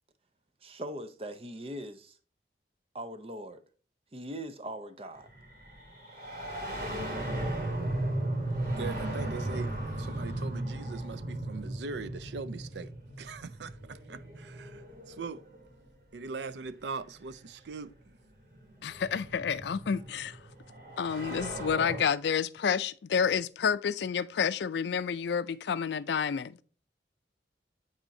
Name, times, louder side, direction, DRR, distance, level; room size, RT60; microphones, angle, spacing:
voice 1, 0.6-2.2 2.9-3.6 4.1-5.3, right 1 dB, 30° right, 0.6 m, -40 dB
sound 1, 5.2-15.9 17.1-17.2 18.2-22.0, right 1 dB, 45° right, 3.2 m, -36 dB
voice 2, 8.8-12.9 13.2-15.4 16.1-18.2, right 4 dB, 75° right, 0.5 m, -41 dB
voice 3, 18.8-20.4 21.0-26.6, left 7 dB, 75° left, 0.4 m, -29 dB
8.9 x 4.2 x 2.6 m
head